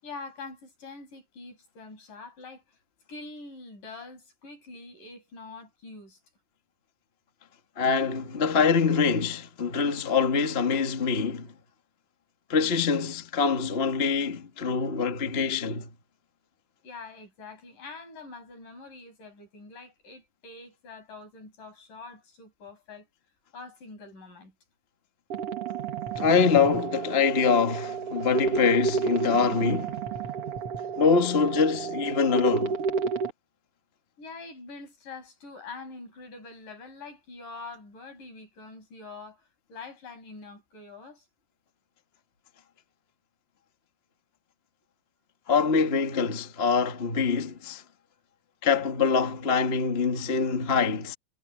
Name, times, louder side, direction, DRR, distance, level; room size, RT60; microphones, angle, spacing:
voice 1, 0.0-2.6 3.1-6.2 16.8-23.1 23.5-24.5 34.2-41.3, left 3 dB, 55° left, 8.5 m, -44 dB
voice 2, 7.8-11.5 12.5-15.9 26.1-30.0 31.0-32.8 45.5-47.8 48.6-51.1, left 5 dB, 40° left, 0.8 m, -24 dB
sound 1, 25.3-33.3, right 5 dB, 50° right, 2.1 m, -31 dB
omnidirectional pair, 4.4 m